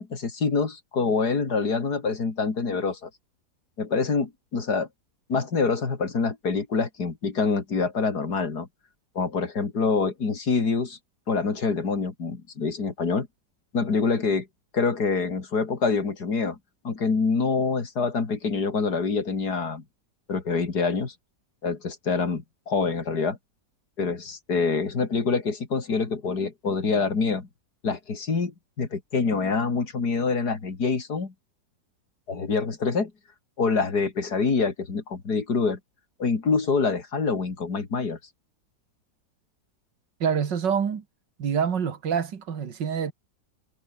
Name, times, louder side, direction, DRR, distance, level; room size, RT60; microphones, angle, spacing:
voice 1, 0.0-3.1 3.8-4.9 5.3-8.7 9.2-11.0 11.3-13.3 13.7-14.5 14.7-16.6 16.8-19.8 20.3-21.1 21.6-23.4 24.0-27.5 27.8-31.3 32.3-33.1 33.6-35.8 36.2-38.2, left 4 dB, 65° left, 3.6 m, -26 dB
voice 2, 40.2-41.0 41.4-43.1, right 7 dB, 85° right, 2.4 m, -26 dB
omnidirectional pair, 1.9 m